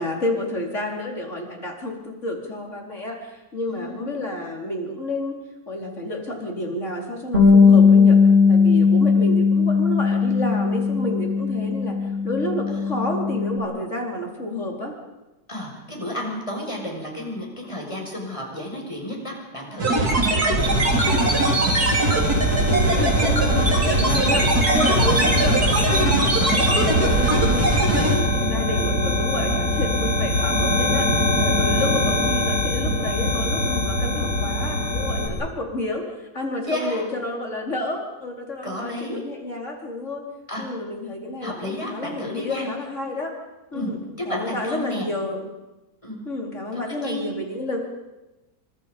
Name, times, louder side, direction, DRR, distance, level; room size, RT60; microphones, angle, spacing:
voice 1, 0.0-5.4 5.7-8.2 8.5-14.9 22.6-27.7 27.9-40.2 40.6-43.3 43.7-44.0 44.2-45.5 46.2-47.8, left 1 dB, 45° left, 0 dB, 4.8 m, -30 dB
voice 2, 3.7-4.0 15.5-20.6 25.1-25.3 28.4-28.6 31.8-31.9 36.7-37.0 38.6-39.2 40.5-40.7 41.4-42.7 43.7-43.9 44.3-45.1 46.0-46.2 46.7-47.2, left 1 dB, 20° left, 0 dB, 6.5 m, -32 dB
Bass guitar, 7.3-13.6, left 5 dB, 30° right, 4.6 m, -17 dB
sound 1, 19.8-28.2, right 2 dB, 70° right, 3.8 m, -21 dB
sound 2, 20.6-35.3, left 1 dB, 85° left, 5.8 m, -23 dB
28.5 x 25.5 x 5.4 m, 1.0 s
omnidirectional pair, 1.7 m